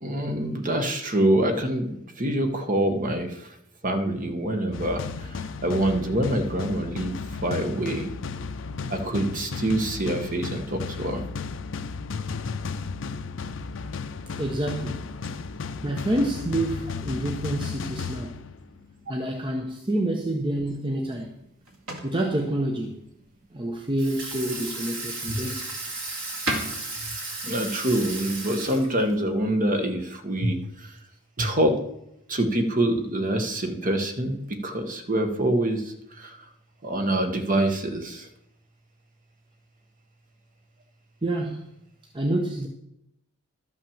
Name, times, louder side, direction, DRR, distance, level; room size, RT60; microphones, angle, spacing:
voice 1, 0.0-3.5 3.8-7.1 7.4-8.1 8.9-11.2 25.3-25.4 27.4-31.0 31.4-31.8 32.3-34.4 34.6-36.4 36.8-38.3, right 1 dB, 40° right, 1.3 m, -25 dB
sound 1, 4.7-18.9, left 4 dB, 60° left, 0.5 m, -34 dB
voice 2, 14.4-15.0 15.8-18.4 19.1-21.3 22.0-23.1 23.5-25.6 41.2-41.6 42.1-42.7, right 1 dB, 25° right, 0.8 m, -28 dB
sound 2, 20.7-29.8, right 1 dB, 80° right, 2.4 m, -40 dB
Water tap faucet / Sink (filling or washing), 24.0-29.2, right 3 dB, 60° right, 3.0 m, -35 dB
12.0 x 5.8 x 7.1 m
head